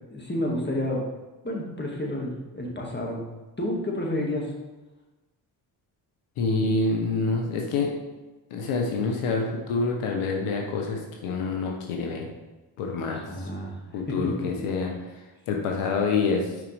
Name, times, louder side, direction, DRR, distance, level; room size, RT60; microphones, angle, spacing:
voice 1, 0.1-1.1 1.4-3.2 3.6-4.5 13.0-13.8 14.1-14.3 14.6-14.7, left 1 dB, 20° left, -1 dB, 1.9 m, -30 dB
voice 2, 6.4-7.9 8.5-12.3 12.8-13.2 13.9-14.9 15.5-16.5, left 4 dB, 85° left, 1 dB, 0.9 m, -26 dB
6.1 x 5.1 x 3.3 m, 1.1 s
supercardioid pair, 40°, 49 cm